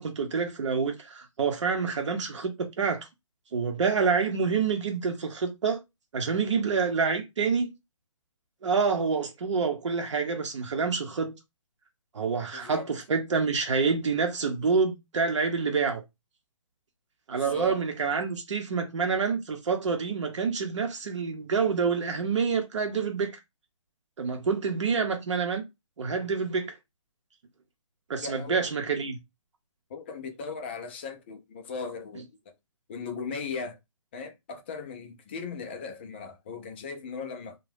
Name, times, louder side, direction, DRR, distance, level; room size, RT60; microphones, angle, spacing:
voice 1, 0.0-3.1 3.5-5.8 6.1-7.7 8.6-11.4 12.1-16.0 17.3-23.3 24.2-25.6 26.0-26.7 28.1-29.2, right 5 dB, 60° right, 0.8 m, -27 dB
voice 2, 12.5-12.9 17.3-17.8 28.2-28.6 29.9-32.2 32.9-33.8 34.1-37.6, left 5 dB, 20° left, 0.4 m, -38 dB
2.6 x 2.2 x 3.3 m
hypercardioid pair, 155°, 17 cm